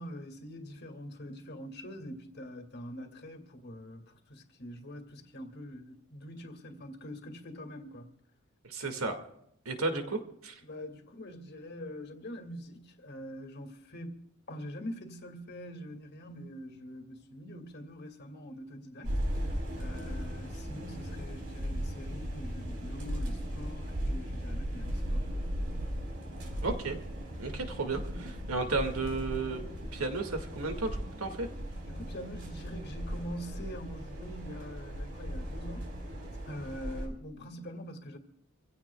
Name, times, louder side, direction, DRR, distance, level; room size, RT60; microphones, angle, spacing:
voice 1, 0.0-8.1 9.7-10.1 10.6-25.3 31.9-36.0 36.5-38.2, equal, 50° left, 2.2 m, -44 dB
voice 2, 8.6-9.2 9.7-10.0 10.4-10.5 26.6-27.0 27.4-29.6 29.9-31.5, right 3 dB, 90° right, 2.0 m, -33 dB
sound 1, 19.0-37.1, equal, 70° right, 4.3 m, -37 dB
26.0 x 16.5 x 2.3 m
head